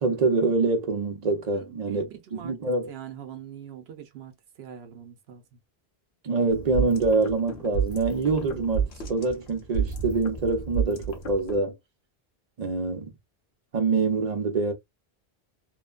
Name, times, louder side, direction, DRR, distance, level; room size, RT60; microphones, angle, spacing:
voice 1, 0.0-2.9 6.2-11.7 12.6-13.1 13.7-14.7, right 3 dB, 45° right, 0.7 m, -25 dB
voice 2, 1.5-2.5 2.9-4.3 4.6-5.4, right 9 dB, 80° right, 0.8 m, -43 dB
sound 1, 6.5-11.6, right 6 dB, 75° left, 1.0 m, -31 dB
3.0 x 2.1 x 2.3 m
omnidirectional pair, 1.1 m